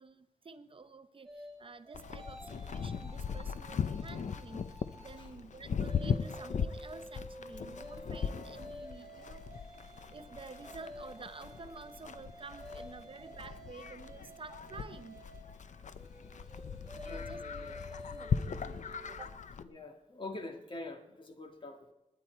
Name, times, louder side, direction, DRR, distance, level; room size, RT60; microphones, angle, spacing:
voice 1, 0.0-9.5 10.1-15.3 16.3-16.4 17.0-19.3, right 4 dB, 45° right, 10 dB, 0.7 m, -50 dB
sound 1, 1.3-5.3 5.7-19.3, equal, 5° right, 5.2 m, -50 dB
Livestock farm animals working animals, 1.9-19.6, left 6 dB, 70° left, 0.6 m, -39 dB
voice 2, 5.0-5.6 15.7-15.8 16.3-16.4 17.1-17.8 18.8-19.1 19.6-21.9, left 2 dB, 40° left, 5 dB, 1.7 m, -46 dB
29.0 x 9.8 x 4.5 m, 0.98 s
wide cardioid pair, 150°, 13 cm